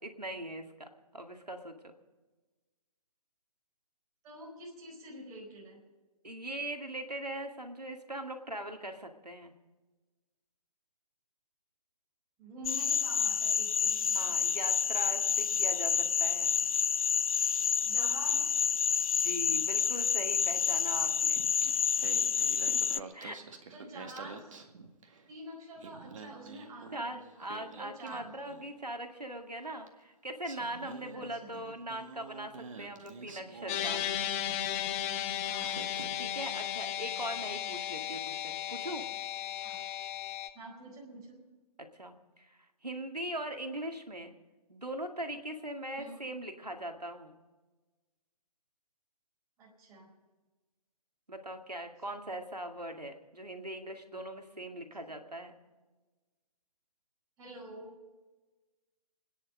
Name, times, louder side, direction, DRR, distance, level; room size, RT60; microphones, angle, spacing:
voice 1, 0.0-1.7 6.2-9.5 14.1-16.5 19.2-21.4 22.4-23.6 26.9-34.0 36.2-39.1 41.9-44.3 44.7-47.4 51.3-55.6, right 1 dB, 90° right, 5 dB, 2.1 m, -41 dB
voice 2, 4.2-5.8 12.4-14.3 17.8-18.5 21.6-21.7 23.4-24.5 25.3-27.2 27.5-28.5 31.1-31.6 35.4-35.8 39.6-39.8 40.5-41.4 46.0-46.2 49.6-50.1 57.4-57.9, right 1 dB, 15° right, -3 dB, 4.7 m, -47 dB
sound 1, 12.6-23.0, left 7 dB, 60° left, 0.4 m, -29 dB
Singing, 21.4-25.3 25.6-28.8 29.9-30.0 30.4-34.6 35.2-35.3 35.6-36.4, right 4 dB, 55° right, 1.9 m, -48 dB
sound 2, 33.7-40.5, left 11 dB, 20° left, 0.7 m, -35 dB
26.0 x 10.0 x 5.2 m, 1.2 s
figure-of-eight pair, 130°, 20 cm